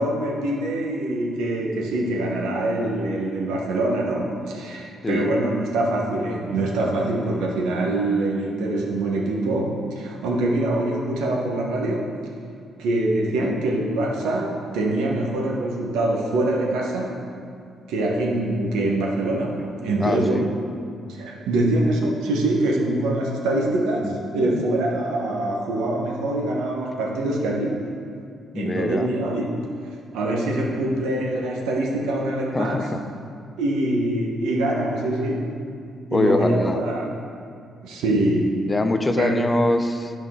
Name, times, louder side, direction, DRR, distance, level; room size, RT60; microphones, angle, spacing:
voice 1, 0.0-12.1 12.8-17.1 17.9-20.4 21.1-27.9 28.5-29.6 30.1-32.9 33.6-35.6 36.1-37.1 37.8-38.6 39.2-39.4, right 1 dB, 90° right, -1 dB, 1.1 m, -24 dB
voice 2, 20.0-20.5 24.0-24.6 28.5-29.1 32.5-33.0 36.1-36.8 38.7-40.1, left 2 dB, 20° left, 8 dB, 0.5 m, -24 dB
10.5 x 5.3 x 3.7 m, 2.3 s
cardioid pair, 85°, 0 cm